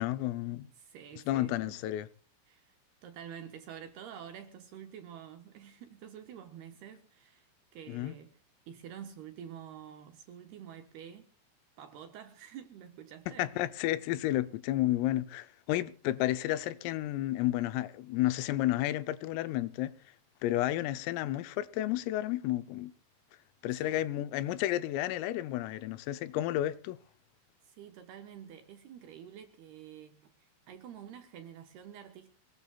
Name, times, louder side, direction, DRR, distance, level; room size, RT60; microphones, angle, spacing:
voice 1, 0.0-0.7 1.3-2.1 7.9-8.2 13.3-19.9 20.4-22.9 23.6-27.0, left 14 dB, 85° left, 3.5 m, -31 dB
voice 2, 0.8-1.8 2.5-2.8 3.0-8.3 8.7-11.3 11.8-13.5 23.9-24.0 27.6-32.3, right 9 dB, 70° right, 2.6 m, -48 dB
22.0 x 20.5 x 2.4 m
omnidirectional pair, 5.9 m